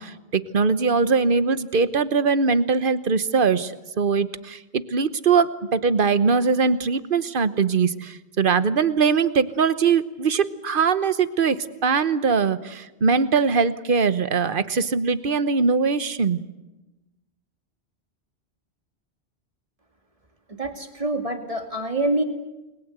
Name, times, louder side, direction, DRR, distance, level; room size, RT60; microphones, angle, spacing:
voice 1, 0.0-16.4, right 5 dB, 55° right, 13 dB, 1.3 m, -21 dB
voice 2, 20.5-22.2, right 2 dB, 30° right, 4 dB, 2.8 m, -26 dB
29.5 x 22.0 x 8.2 m, 1.0 s
omnidirectional pair, 1.1 m